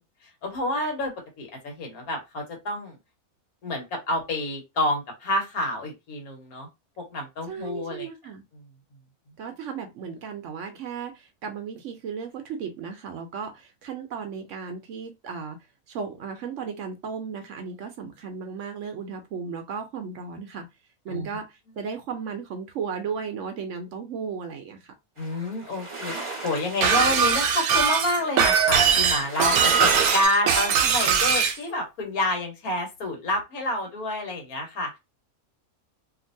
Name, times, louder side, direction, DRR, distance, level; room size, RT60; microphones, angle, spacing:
voice 1, 0.4-3.0 3.6-6.7 7.0-8.1 21.1-21.3 25.2-35.0, left 1 dB, 80° left, 1.5 m, -28 dB
voice 2, 7.5-8.4 9.4-15.6 15.9-20.7 21.0-24.9, right 6 dB, 65° right, 0.8 m, -35 dB
sound 1, 25.2-30.2, right 3 dB, 30° right, 0.7 m, -33 dB
Shatter, 26.8-31.6, right 7 dB, 90° right, 1.1 m, -21 dB
2.9 x 2.5 x 2.6 m
omnidirectional pair, 1.5 m